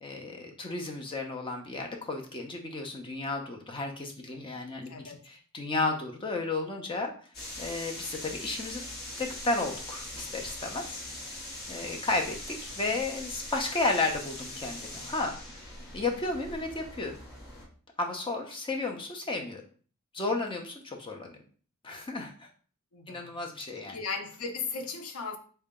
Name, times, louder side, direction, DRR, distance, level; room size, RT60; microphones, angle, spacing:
voice 1, 0.0-7.1 7.6-8.8 9.2-11.1 11.7-17.2 18.0-19.6 20.1-21.4 21.8-22.5 23.1-24.0, left 3 dB, 25° left, 0.5 m, -33 dB
voice 2, 4.9-5.2 11.7-12.0 22.9-23.4 23.9-25.4, left 5 dB, 75° left, 0.6 m, -37 dB
sound 1, 7.3-17.7, left 1 dB, 45° left, 0.9 m, -41 dB
3.8 x 2.2 x 3.6 m
head